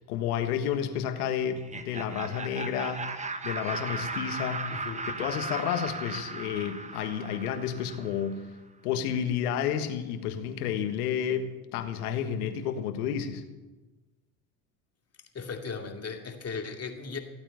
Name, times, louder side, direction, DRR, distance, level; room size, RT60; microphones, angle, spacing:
voice 1, 0.0-3.1 3.4-4.7 5.1-8.4 8.8-13.4, left 9 dB, 85° left, 8 dB, 1.6 m, -31 dB
Laughter, 1.5-8.3, right 3 dB, 15° right, 1.3 m, -37 dB
voice 2, 4.7-5.1 15.3-17.2, left 5 dB, 35° left, 4 dB, 2.5 m, -37 dB
16.0 x 9.0 x 9.0 m, 1.2 s
hypercardioid pair, 80°, 43 cm